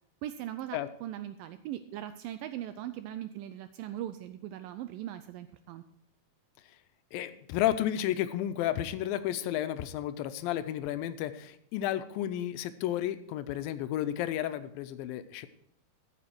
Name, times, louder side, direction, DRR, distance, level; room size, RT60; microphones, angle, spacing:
voice 1, 0.2-5.8, right 12 dB, 80° right, 10 dB, 2.1 m, -40 dB
voice 2, 7.1-15.5, left 12 dB, 80° left, 11 dB, 2.3 m, -32 dB
14.0 x 7.6 x 4.5 m, 0.67 s
omnidirectional pair, 4.3 m